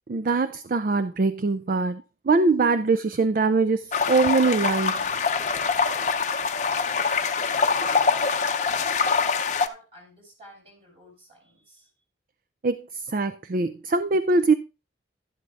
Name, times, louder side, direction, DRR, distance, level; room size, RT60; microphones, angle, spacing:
voice 1, 0.1-5.1 12.6-14.5, right 3 dB, 50° right, 0.4 m, -23 dB
sound 1, 3.9-9.7, left 5 dB, 40° left, 0.6 m, -24 dB
voice 2, 7.4-11.9, right 1 dB, 30° right, 6.1 m, -50 dB
12.0 x 11.0 x 2.5 m
head